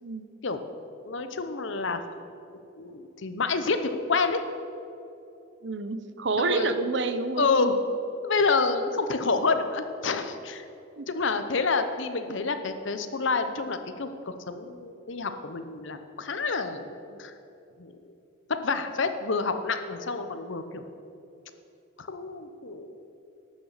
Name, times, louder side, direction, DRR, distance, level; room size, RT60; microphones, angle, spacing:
voice 1, 1.1-2.0 2.8-3.8 4.1-4.4 6.4-6.7 7.4-7.8 8.2-10.6 11.1-17.3 17.8-17.9 18.5-20.8 22.0-23.0, left 4 dB, 65° left, 9 dB, 0.8 m, -28 dB
voice 2, 5.6-7.5 9.0-9.1 11.0-11.1 17.1-17.2, right 3 dB, 60° right, 10 dB, 0.7 m, -28 dB
12.0 x 6.6 x 7.3 m, 2.7 s
head